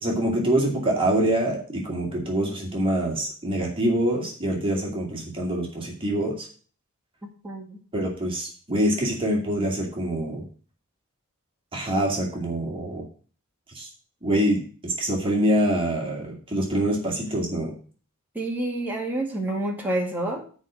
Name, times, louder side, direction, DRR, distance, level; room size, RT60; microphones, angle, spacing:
voice 1, 0.0-6.5 7.9-10.4 11.7-13.0 13.7-13.9 14.2-17.7, right 1 dB, 25° right, -2 dB, 2.4 m, -25 dB
voice 2, 7.2-7.8 18.3-20.4, right 1 dB, 10° right, -2 dB, 2.1 m, -28 dB
8.1 x 5.1 x 7.4 m, 0.41 s
head